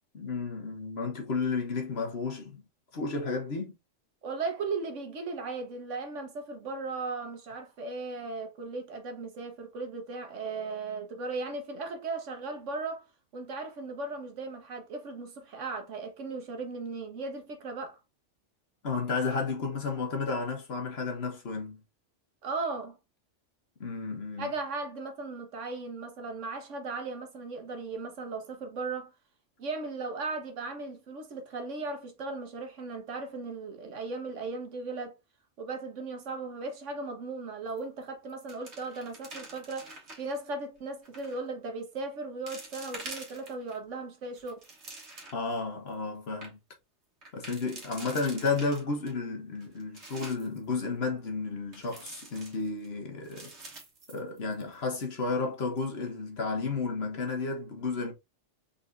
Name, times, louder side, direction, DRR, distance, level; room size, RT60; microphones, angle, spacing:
voice 1, 0.1-2.6 2.9-3.7 18.8-21.8 23.8-24.5 45.3-46.6 47.3-53.5 54.1-58.1, left 4 dB, 60° left, 1.4 m, -32 dB
voice 2, 4.2-13.0 13.3-18.0 22.4-23.0 24.4-29.1 29.6-35.2 35.6-44.6, right 3 dB, 90° right, 1.4 m, -37 dB
sound 1, 37.7-38.0 38.3-40.4 41.0-41.4 42.0-42.1 42.5-43.8 44.2-45.5 45.9-46.0 46.2-46.5 47.2-49.1 49.6-50.6 51.7-52.9 53.2-54.7 55.0-55.1 55.6-55.9, right 2 dB, 65° right, 1.6 m, -46 dB
4.0 x 4.0 x 2.5 m
omnidirectional pair, 1.2 m